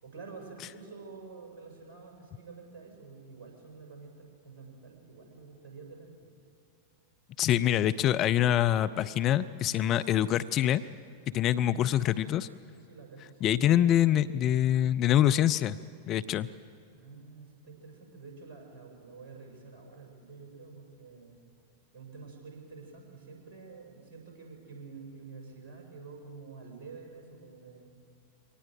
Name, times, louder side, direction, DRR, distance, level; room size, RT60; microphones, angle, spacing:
voice 1, 0.0-6.3 11.8-12.2 12.7-14.0 17.0-21.4 21.9-27.9, right 4 dB, 45° right, 1 dB, 6.4 m, -48 dB
voice 2, 7.4-10.8 11.3-12.5 13.4-15.8 16.1-16.5, left 11 dB, 35° left, 12 dB, 0.5 m, -25 dB
23.5 x 18.5 x 7.8 m, 2.4 s
figure-of-eight pair, 90°, 0 cm